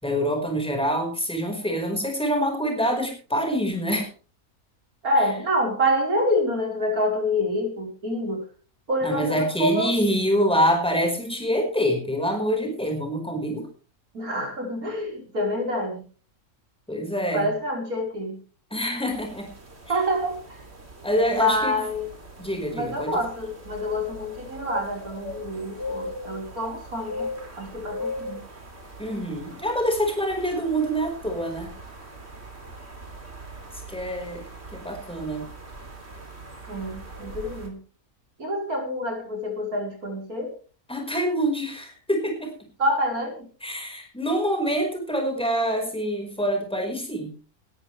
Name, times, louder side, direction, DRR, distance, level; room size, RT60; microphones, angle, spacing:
voice 1, 0.0-4.1 9.0-13.7 16.9-17.5 18.7-19.5 19.8-20.0 21.0-21.8 22.4-23.2 29.0-31.7 33.9-34.4 34.7-35.5 40.9-42.7 43.6-47.3, equal, 5° left, 3 dB, 5.0 m, -26 dB
voice 2, 5.0-8.5 8.9-9.9 14.1-16.0 17.3-18.4 19.9-20.6 21.3-22.1 22.7-27.3 27.6-28.4 36.6-37.8 38.4-40.5 42.8-43.5, equal, 75° right, 2 dB, 5.3 m, -27 dB
sound 1, 19.1-37.7, left 1 dB, 45° right, 3.4 m, -40 dB
19.5 x 13.5 x 3.4 m, 0.38 s
omnidirectional pair, 1.5 m